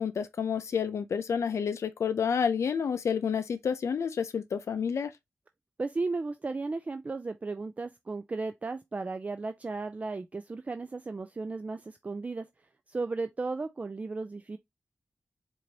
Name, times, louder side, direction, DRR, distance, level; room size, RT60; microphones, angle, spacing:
voice 1, 0.0-5.1, left 7 dB, 80° left, 0.5 m, -29 dB
voice 2, 5.8-12.5 12.9-14.6, right 3 dB, 30° right, 0.3 m, -35 dB
4.6 x 2.6 x 2.8 m
wide cardioid pair, 100°, 5 cm